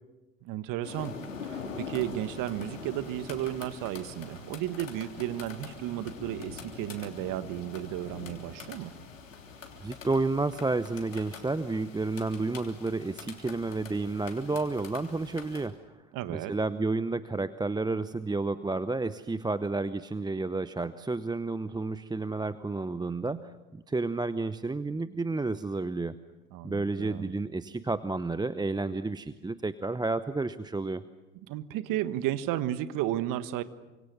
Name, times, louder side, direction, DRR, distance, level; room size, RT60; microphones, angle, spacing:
voice 1, 0.4-1.2 1.4-8.9 16.1-16.5 26.5-27.3 31.5-33.6, right 13 dB, 55° right, 13 dB, 1.5 m, -33 dB
sound 1, 0.8-15.7, left 5 dB, 90° left, 3.3 m, -44 dB
voice 2, 9.8-15.7 16.3-26.2 26.6-31.0, right 3 dB, 10° right, 13 dB, 0.9 m, -31 dB
28.5 x 25.5 x 6.9 m, 1.1 s
hypercardioid pair, 70°, 38 cm